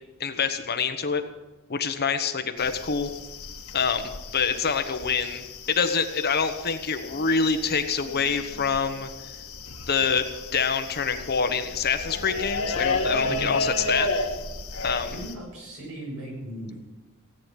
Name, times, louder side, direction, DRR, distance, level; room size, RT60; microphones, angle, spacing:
voice 1, 0.2-1.2 1.7-3.1 3.7-9.1 9.9-10.3 10.5-14.1 14.8-15.1, left 5 dB, 45° left, 8 dB, 1.1 m, -26 dB
sound 1, 2.6-15.3, left 3 dB, 70° left, 1.7 m, -33 dB
voice 2, 13.2-13.5 15.1-16.9, equal, 75° right, -1 dB, 7.2 m, -37 dB
17.5 x 9.0 x 7.4 m, 1.1 s
head